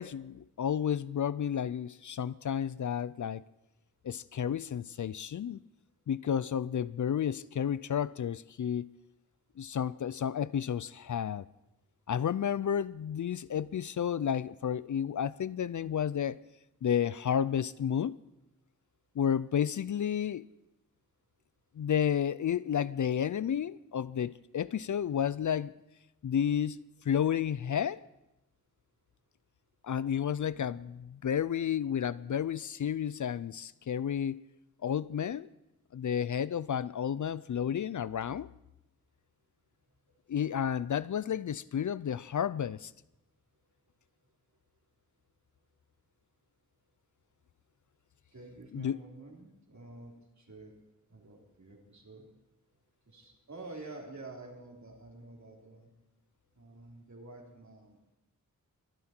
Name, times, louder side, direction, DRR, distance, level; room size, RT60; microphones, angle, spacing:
voice 1, 0.0-3.4 4.0-5.6 6.1-8.9 9.6-11.5 12.1-16.4 16.8-18.2 19.2-20.5 21.8-25.7 26.2-26.8 27.0-28.0 29.8-34.4 34.8-35.5 35.9-38.5 40.3-42.9 48.7-49.0, left 8 dB, 60° left, 0.4 m, -31 dB
voice 2, 48.3-50.7 51.1-52.3 53.1-55.9 56.6-58.0, right 2 dB, 55° right, 3.6 m, -49 dB
23.5 x 11.0 x 4.5 m
wide cardioid pair, 100°, 35 cm